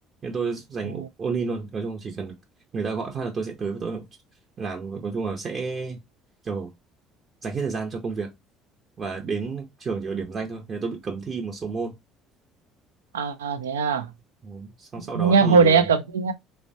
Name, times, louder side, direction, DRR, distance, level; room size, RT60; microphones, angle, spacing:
voice 1, 0.2-2.3 2.7-4.1 4.6-6.0 6.4-6.7 7.4-8.3 9.0-11.9 14.4-15.9, right 4 dB, 40° right, 0.6 m, -30 dB
voice 2, 13.1-14.1 15.0-16.3, right 5 dB, 85° right, 0.3 m, -20 dB
3.1 x 2.1 x 2.6 m
hypercardioid pair, 60°, 0 cm